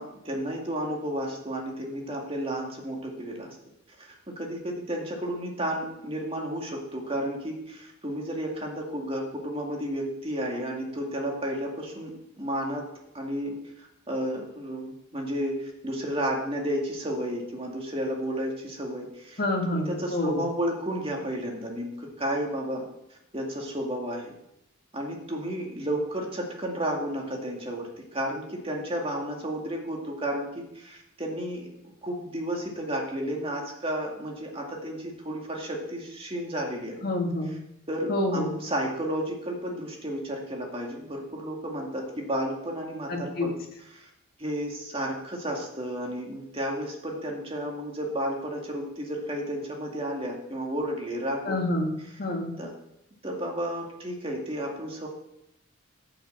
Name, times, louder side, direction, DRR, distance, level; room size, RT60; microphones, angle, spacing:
voice 1, 0.0-3.6 4.0-12.1 12.4-12.9 13.1-22.8 23.3-24.3 24.9-31.6 32.0-37.0 37.9-43.5 43.9-44.1 44.4-51.6 52.6-52.7 53.2-55.1, equal, 25° right, -1 dB, 2.3 m, -32 dB
voice 2, 19.4-20.4 37.0-37.5 38.1-38.5 43.1-43.5 51.5-51.9 52.2-52.5, left 1 dB, 45° left, 1 dB, 2.1 m, -27 dB
10.5 x 6.0 x 7.7 m, 0.82 s
head